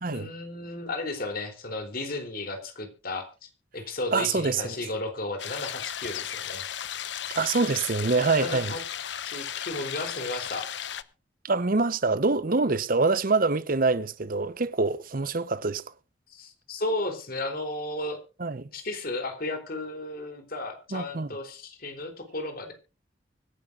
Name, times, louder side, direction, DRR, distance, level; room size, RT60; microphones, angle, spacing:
voice 1, 0.1-6.6 8.4-8.8 9.2-10.7 16.3-18.2 18.7-22.7, left 2 dB, 55° left, 3.4 m, -34 dB
voice 2, 4.1-4.8 7.3-8.7 11.4-15.8 18.4-18.7 20.9-21.3, right 3 dB, 50° right, 0.9 m, -25 dB
sound 1, 5.4-11.0, left 9 dB, 70° left, 0.9 m, -35 dB
24.5 x 11.5 x 2.5 m
head